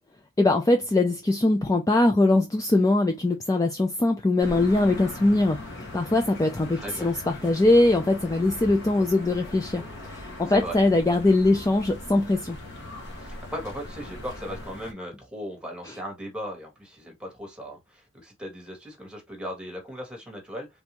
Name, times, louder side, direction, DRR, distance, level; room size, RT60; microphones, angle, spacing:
voice 1, 0.4-5.6 5.9-9.8 10.1-12.6 15.9-16.0, left 2 dB, 15° left, 0.4 m, -22 dB
sound 1, 4.4-14.9, left 1 dB, 55° left, 1.0 m, -40 dB
voice 2, 6.8-7.1 10.5-10.8 13.2-20.7, equal, 5° right, 1.3 m, -37 dB
3.4 x 2.6 x 2.9 m
head